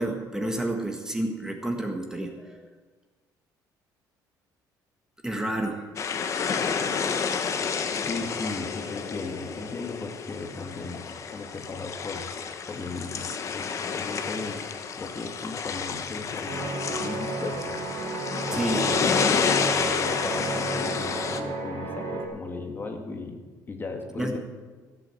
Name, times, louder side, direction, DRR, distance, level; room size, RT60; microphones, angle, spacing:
voice 1, 0.0-2.6 5.2-5.8 18.4-18.8 24.2-24.4, right 1 dB, 10° right, 3 dB, 1.7 m, -30 dB
sound 1, 6.0-21.4, left 6 dB, 40° left, 1.2 m, -30 dB
voice 2, 8.1-11.1 11.3-12.3 12.7-14.7 15.0-17.8 18.5-24.4, left 3 dB, 25° left, 4 dB, 1.8 m, -36 dB
sound 2, 16.5-22.3, right 3 dB, 80° right, 4.3 m, -32 dB
14.5 x 9.0 x 7.7 m, 1.4 s
cardioid pair, 125°, 8 cm